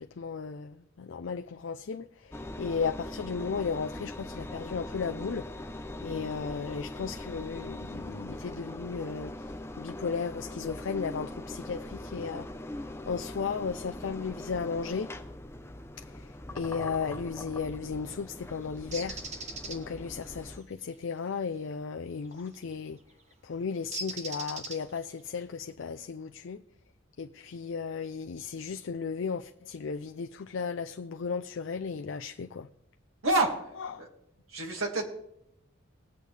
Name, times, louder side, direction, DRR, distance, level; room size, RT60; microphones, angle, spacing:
voice 1, 0.0-5.5 6.0-15.1 16.0-23.0 23.4-26.6 27.2-32.7 33.9-34.1, left 5 dB, 65° left, 0.4 m, -35 dB
Engine, 2.3-20.6, left 1 dB, 10° left, 0.5 m, -41 dB
Bird, 18.9-19.8 22.4-22.6 23.9-25.1, right 3 dB, 35° right, 1.1 m, -38 dB
voice 2, 33.2-33.7 34.0-34.1 34.5-35.1, right 2 dB, 85° right, 2.2 m, -28 dB
20.0 x 8.2 x 3.4 m
head